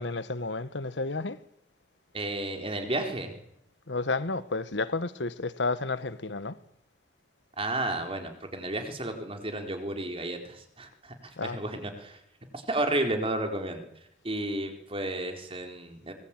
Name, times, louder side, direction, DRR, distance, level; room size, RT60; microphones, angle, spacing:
voice 1, 0.0-1.4 3.9-6.6 11.4-11.6, left 3 dB, 80° left, 1.4 m, -31 dB
voice 2, 2.1-3.4 7.6-12.2 12.5-13.8 14.2-16.1, right 1 dB, 30° right, 4.2 m, -32 dB
24.0 x 21.0 x 9.1 m
head